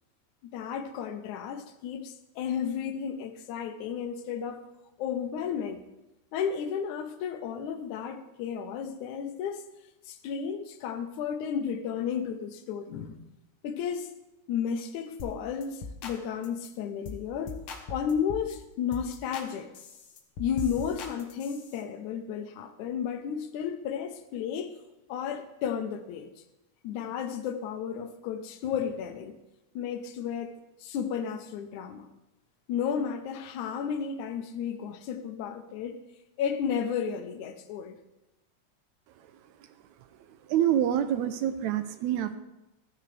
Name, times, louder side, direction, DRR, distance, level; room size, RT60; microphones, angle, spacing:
voice 1, 0.4-4.7 5.0-5.8 6.3-9.6 10.1-13.2 13.6-14.1 14.5-17.6 17.9-19.7 20.4-24.8 25.1-26.3 26.8-29.3 29.8-32.1 32.7-36.0 36.4-38.0, left 7 dB, 80° left, 2.2 m, -33 dB
sound 1, 15.2-15.4 15.6-16.2 16.4-16.7 17.0-17.2 17.5-18.5 18.9-19.5 19.7-21.8, left 4 dB, 60° left, 1.5 m, -40 dB
voice 2, 40.5-42.4, right 10 dB, 80° right, 1.8 m, -26 dB
14.0 x 9.7 x 3.3 m
omnidirectional pair, 3.4 m